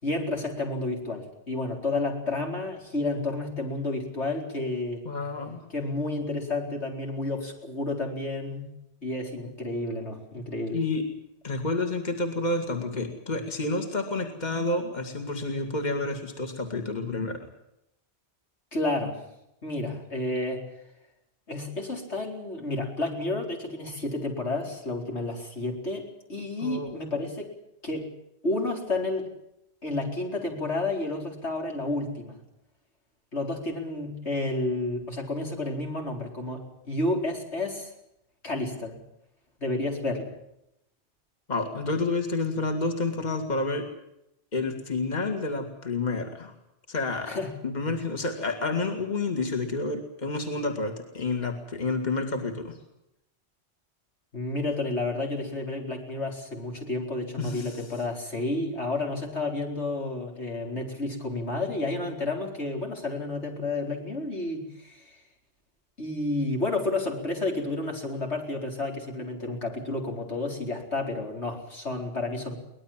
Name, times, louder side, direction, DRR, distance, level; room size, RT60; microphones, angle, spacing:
voice 1, 0.0-5.0 5.7-8.7 9.0-10.8 18.7-19.2 19.6-20.6 21.5-27.5 27.8-28.1 28.4-29.3 29.8-32.4 33.3-37.9 38.4-39.0 39.6-40.3 47.3-47.5 47.9-48.0 54.3-65.2 66.0-72.6, left 2 dB, 80° left, 1 dB, 4.8 m, -31 dB
voice 2, 5.1-5.6 10.7-11.0 11.4-17.5 26.6-26.9 41.5-43.9 44.5-46.5 46.9-47.4 47.6-52.8 57.4-57.8, left 3 dB, 40° left, 4 dB, 2.4 m, -29 dB
23.5 x 19.5 x 7.4 m, 0.83 s
omnidirectional pair, 1.1 m